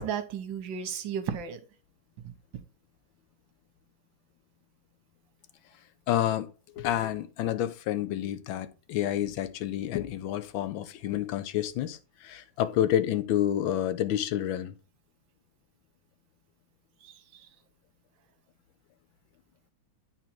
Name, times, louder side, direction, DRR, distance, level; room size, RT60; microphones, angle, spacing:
voice 1, 0.0-1.6 2.2-2.6 17.0-17.5, right 8 dB, 75° right, 1.7 m, -35 dB
voice 2, 6.1-14.7, left 11 dB, 80° left, 1.5 m, -29 dB
9.1 x 3.8 x 4.5 m
omnidirectional pair, 2.1 m